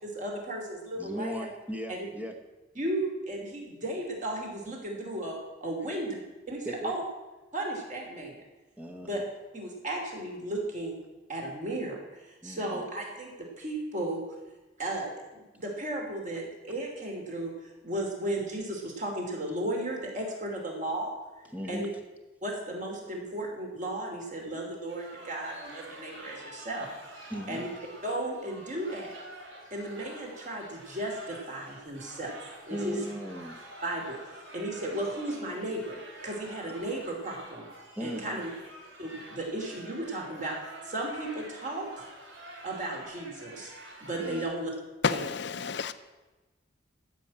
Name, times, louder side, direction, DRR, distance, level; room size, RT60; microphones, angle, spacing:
voice 1, 0.0-1.5 1.9-2.1 2.7-6.2 6.5-7.0 7.5-8.4 9.0-9.2 9.5-11.0 11.3-14.2 14.8-21.1 21.7-21.9 22.4-26.9 27.5-27.7 28.0-29.1 29.7-32.3 32.6-33.0 33.8-36.0 36.2-37.7 38.0-38.5 39.0-40.6 40.8-42.0 42.6-43.7 44.0-44.7 45.1-45.2, right 1 dB, 40° right, 2.9 m, -35 dB
voice 2, 1.0-2.3 6.6-6.9 8.8-9.2 12.4-12.8 21.5-21.9 27.3-27.7 32.7-33.6 38.0-38.4 44.2-44.5, equal, 5° right, 0.8 m, -37 dB
sound 1, 24.9-44.4, right 1 dB, 70° right, 3.1 m, -48 dB
voice 3, 45.0-45.9, left 5 dB, 55° left, 0.6 m, -29 dB
13.5 x 5.8 x 8.6 m
head